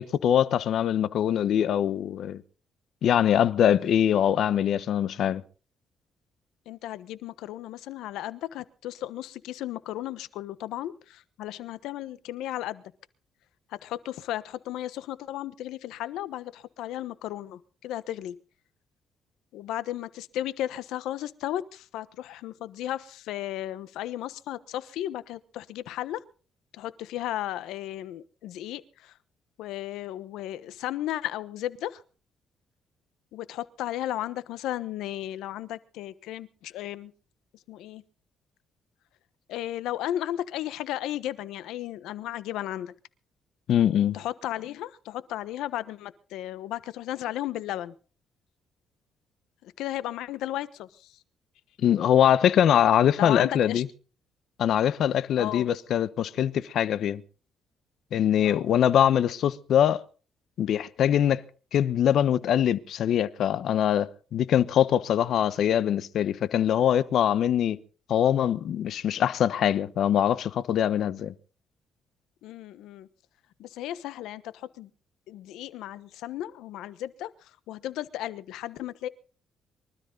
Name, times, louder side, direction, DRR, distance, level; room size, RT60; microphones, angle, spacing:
voice 1, 0.0-2.4 3.0-5.4 43.7-44.2 51.8-53.9 54.6-57.2 58.1-60.0 60.6-61.4 61.7-67.8 68.1-71.3, left 10 dB, 70° left, 1.1 m, -23 dB
voice 2, 6.7-12.8 13.7-18.4 19.5-26.2 26.7-29.2 29.6-32.0 33.3-37.1 37.7-38.0 39.5-42.9 44.1-47.9 49.6-51.2 53.2-53.8 55.4-55.7 58.4-58.7 72.4-73.1 73.6-74.9 75.3-79.1, left 13 dB, 90° left, 1.2 m, -35 dB
24.0 x 13.0 x 4.0 m
cardioid pair, 90°, 0 cm